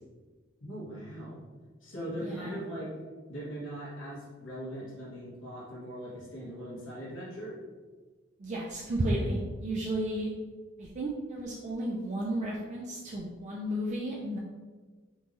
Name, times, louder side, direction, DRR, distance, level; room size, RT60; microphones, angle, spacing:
voice 1, 0.6-1.4 1.8-2.9 3.3-7.5, equal, 70° left, -6 dB, 1.3 m, -40 dB
voice 2, 2.2-2.6 8.4-10.3 10.8-14.4, right 1 dB, 35° right, -3 dB, 0.4 m, -33 dB
3.6 x 3.0 x 2.6 m, 1.4 s
head